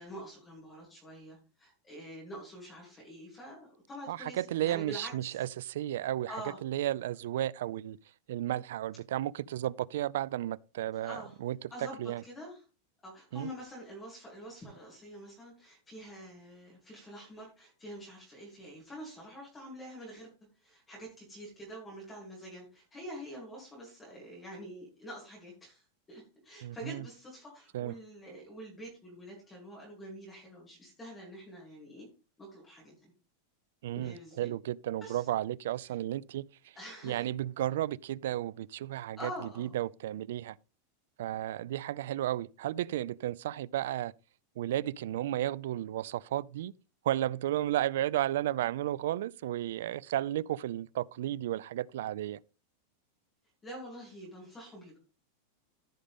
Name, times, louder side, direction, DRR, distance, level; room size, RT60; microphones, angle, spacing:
voice 1, 0.0-5.4 6.2-6.6 10.9-11.4 11.7-12.6 13.0-20.3 20.5-32.1 32.4-33.1 34.0-34.5 35.0-35.3 35.8-36.0 36.7-37.3 38.9-39.7 53.6-55.0, equal, 10° left, 3.0 m, -46 dB
voice 2, 4.1-6.3 6.6-8.0 8.3-11.6 12.0-12.2 13.3-13.5 26.6-27.0 27.7-27.9 33.8-36.4 37.0-39.3 39.6-40.6 41.2-44.1 44.6-46.7 47.0-52.4, right 13 dB, 70° right, 0.4 m, -33 dB
14.5 x 5.2 x 3.6 m
supercardioid pair, 175°, 0 cm